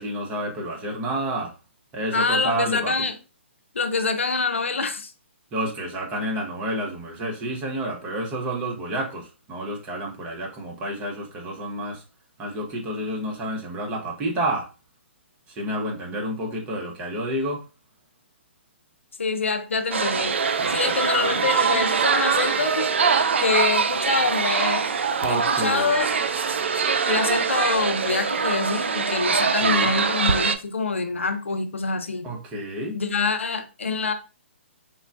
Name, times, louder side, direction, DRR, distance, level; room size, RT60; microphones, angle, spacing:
voice 1, 0.0-1.5 1.9-2.9 5.5-12.0 12.4-14.7 15.6-17.6 20.6-21.0 25.2-25.9 29.6-29.9 32.2-33.0, right 1 dB, 20° right, 0.7 m, -29 dB
voice 2, 2.1-3.1 3.7-5.1 19.2-20.3 20.7-22.9 23.4-24.9 25.3-26.2 27.1-32.3 32.9-34.1, left 4 dB, 75° left, 0.5 m, -25 dB
sound 1, 19.9-30.5, right 5 dB, 70° right, 0.3 m, -23 dB
3.7 x 2.1 x 2.4 m
figure-of-eight pair, 130°, 7 cm